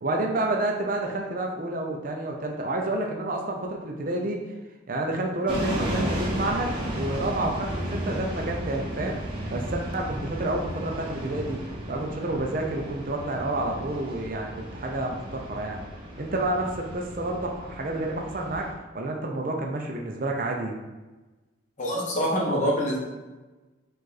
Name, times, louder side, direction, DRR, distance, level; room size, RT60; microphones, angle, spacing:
voice 1, 0.0-4.4 4.9-9.2 9.5-11.6 11.9-15.8 16.2-18.7 18.9-20.7, right 2 dB, 45° right, 1 dB, 0.5 m, -29 dB
sound 1, 5.5-18.7, equal, 25° right, 0.9 m, -33 dB
voice 2, 21.8-23.0, equal, 40° left, -4 dB, 1.1 m, -25 dB
5.1 x 2.5 x 4.0 m, 1.2 s
head